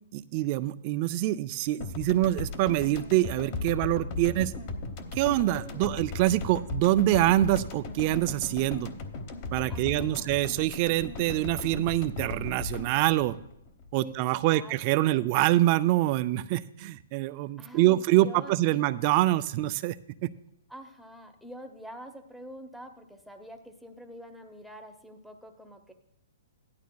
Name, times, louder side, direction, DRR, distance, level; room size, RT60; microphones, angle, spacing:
voice 1, 0.1-4.5 5.1-8.9 9.5-13.4 13.9-20.0 20.2-20.3, right 15 dB, 30° right, 14 dB, 0.3 m, -25 dB
sound 1, 1.8-14.3, left 3 dB, 35° left, 1.0 m, -37 dB
voice 2, 5.3-6.0 9.7-10.3 14.0-14.1 14.4-14.7 15.0-15.2 17.6-18.8 20.7-25.9, equal, ahead, 6 dB, 0.8 m, -46 dB
16.0 x 11.5 x 2.3 m, 0.78 s
hypercardioid pair, 165°, 0 cm